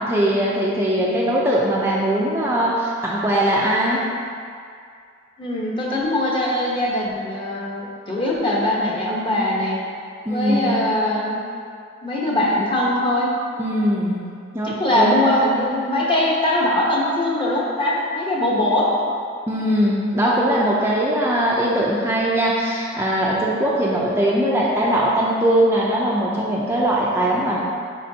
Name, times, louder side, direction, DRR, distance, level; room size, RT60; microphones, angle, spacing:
voice 1, 0.1-4.0 10.3-10.7 13.6-14.2 14.5-15.2 19.5-27.6, right 1 dB, 15° right, -5 dB, 0.5 m, -20 dB
voice 2, 5.4-9.8 10.3-11.4 12.0-13.3 14.6-18.9, left 1 dB, 25° left, -4 dB, 1.1 m, -21 dB
9.5 x 4.5 x 2.8 m, 2.3 s
head